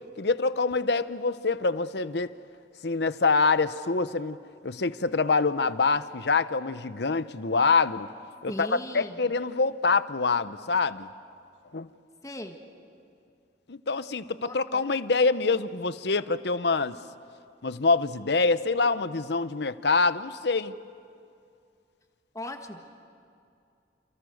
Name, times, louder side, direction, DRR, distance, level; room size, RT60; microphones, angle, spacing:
voice 1, 0.2-2.3 2.8-4.4 4.6-8.1 8.4-8.7 8.9-11.1 11.7-11.9 13.7-17.0 17.6-20.8, left 4 dB, 70° left, 14 dB, 0.9 m, -25 dB
voice 2, 8.5-9.2 12.2-12.6 14.4-14.8 22.3-22.9, left 1 dB, 20° left, 5 dB, 1.7 m, -38 dB
29.0 x 28.0 x 6.6 m, 2.4 s
head